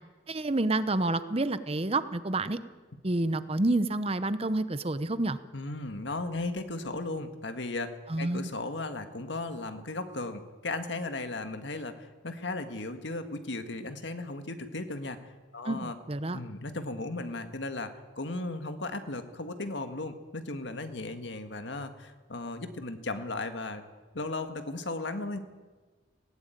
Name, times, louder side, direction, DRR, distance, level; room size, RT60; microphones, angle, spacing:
voice 1, 0.3-2.6 3.0-5.4 8.1-8.5 15.6-16.4, right 2 dB, 30° right, 13 dB, 0.9 m, -29 dB
voice 2, 5.5-16.0 16.3-23.8 24.1-25.4, left 2 dB, 75° left, 8 dB, 1.8 m, -36 dB
19.0 x 17.5 x 9.2 m, 1.3 s
head